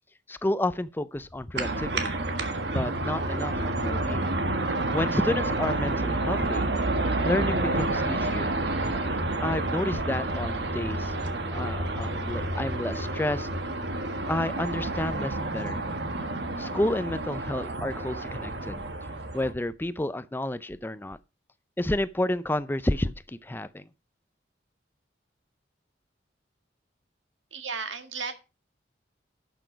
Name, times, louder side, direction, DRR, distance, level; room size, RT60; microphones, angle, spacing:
voice 1, 0.3-2.2 2.7-4.3 4.9-6.7 7.2-8.6 9.4-11.1 11.5-13.5 14.3-15.9 16.6-18.8 19.3-21.2 21.8-23.8, left 1 dB, 10° left, 0.4 m, -30 dB
sound 1, 1.5-19.5, right 2 dB, 65° right, 1.6 m, -29 dB
voice 2, 27.5-28.3, right 5 dB, 85° right, 1.8 m, -34 dB
11.5 x 6.2 x 5.0 m
head